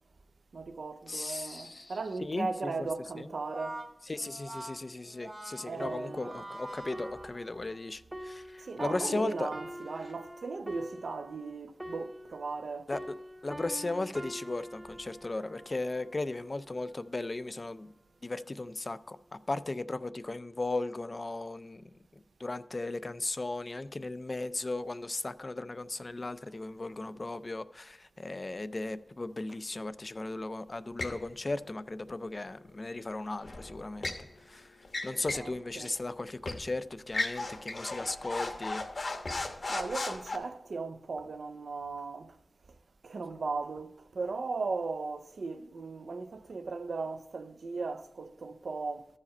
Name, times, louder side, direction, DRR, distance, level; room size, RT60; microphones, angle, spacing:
voice 1, 0.5-3.8 5.6-6.4 8.7-12.9 35.3-35.9 39.7-42.3 43.0-49.1, right 4 dB, 80° right, 0.5 m, -37 dB
voice 2, 1.1-2.7 3.2-3.3 4.1-9.5 12.9-13.2 13.4-17.9 18.2-34.8 35.0-38.8, left 2 dB, 35° left, 0.3 m, -36 dB
Brass instrument, 3.2-7.8, right 1 dB, 40° right, 1.2 m, -45 dB
sound 1, 5.8-12.7 12.9-16.5 17.1-17.4, equal, 15° right, 0.6 m, -45 dB
sound 2, 31.0-31.2 33.4-34.2 34.8-35.5 35.8-36.0 36.4-36.7 37.1-40.4, left 2 dB, 55° left, 1.0 m, -36 dB
13.5 x 4.9 x 4.2 m
wide cardioid pair, 100°, 0 cm